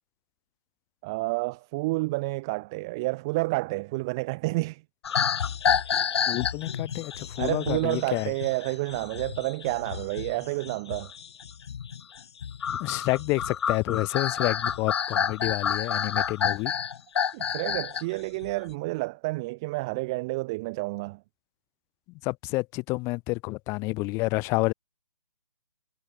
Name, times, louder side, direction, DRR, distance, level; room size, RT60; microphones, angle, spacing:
voice 1, 1.0-4.8 7.4-11.1 13.9-14.0 17.3-21.2, right 24 dB, 5° right, 0.4 m, -30 dB
sound 1, 5.0-18.0 18.4-18.7, left 8 dB, 50° left, 1.2 m, -29 dB
voice 2, 6.3-8.3 12.7-16.7 22.2-24.7, left 24 dB, 15° left, 2.8 m, -29 dB
hypercardioid pair, 170°, 18 cm